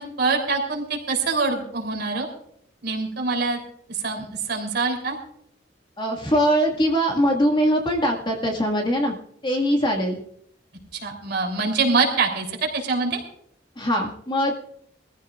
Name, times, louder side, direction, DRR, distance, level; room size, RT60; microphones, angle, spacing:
voice 1, 0.0-2.3 2.8-3.6 3.9-5.2 10.9-13.2, right 4 dB, 60° right, 1 dB, 3.5 m, -24 dB
voice 2, 6.0-9.2 9.4-10.2 13.8-14.5, equal, 25° left, 0 dB, 2.0 m, -22 dB
23.0 x 15.0 x 2.5 m, 0.71 s
head